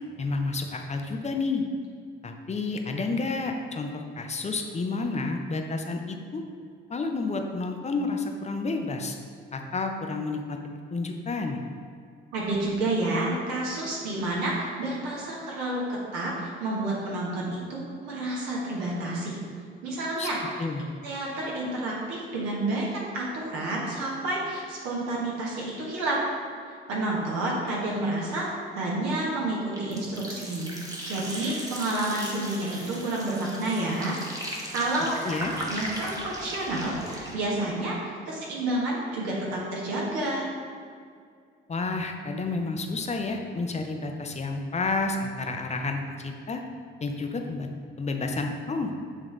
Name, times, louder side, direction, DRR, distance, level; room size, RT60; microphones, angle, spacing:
voice 1, 0.2-1.6 2.2-6.4 6.9-9.2 9.5-10.6 10.9-11.6 20.2-20.3 20.6-20.8 35.2-35.5 41.7-46.6 47.0-47.7 48.0-49.0, left 3 dB, 25° left, 4 dB, 0.6 m, -30 dB
voice 2, 12.3-19.4 19.8-20.6 21.0-26.2 26.7-28.5 28.7-30.7 31.0-34.2 34.7-35.1 35.7-40.5, right 2 dB, 60° right, -4 dB, 1.3 m, -29 dB
sound 1, 29.7-37.3, equal, 10° right, 1.1 m, -37 dB
8.1 x 3.6 x 3.2 m, 2.2 s
figure-of-eight pair, 50°, 30 cm